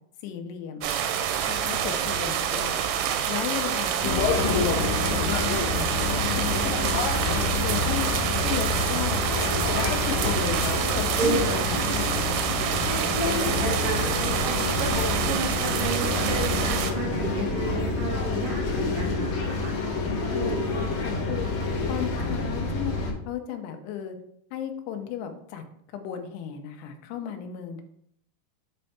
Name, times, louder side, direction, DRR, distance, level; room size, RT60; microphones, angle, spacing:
voice 1, 0.2-0.9 1.5-2.8 3.3-5.9 6.3-8.1 8.4-9.3 9.7-12.5 14.9-15.2 20.5-21.5 21.9-24.2 24.5-25.6 25.9-27.8, left 9 dB, 85° left, 6 dB, 2.8 m, -35 dB
sound 1, 0.8-16.9, right 9 dB, 85° right, 2.2 m, -27 dB
sound 2, 3.7-15.3, left 2 dB, 35° left, 2.0 m, -44 dB
sound 3, 4.0-23.1, left 3 dB, 70° left, 1.9 m, -28 dB
voice 2, 11.7-19.7 20.3-20.9, right 2 dB, 65° right, -2 dB, 1.5 m, -32 dB
7.4 x 3.3 x 4.2 m, 0.70 s
omnidirectional pair, 4.7 m